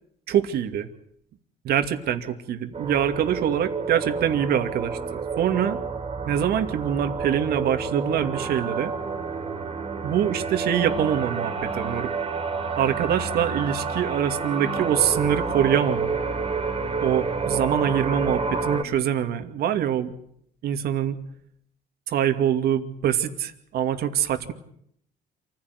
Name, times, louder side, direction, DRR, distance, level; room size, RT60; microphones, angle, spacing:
voice 1, 0.3-0.9 1.6-5.8 6.2-8.9 10.0-12.1 12.8-16.1 17.0-20.1 20.6-21.2 22.1-24.5, right 9 dB, 65° right, 8 dB, 2.4 m, -24 dB
sound 1, 2.7-18.8, right 4 dB, 35° right, 3.4 m, -29 dB
27.5 x 16.0 x 9.7 m, 0.71 s
cardioid pair, 110°, 17 cm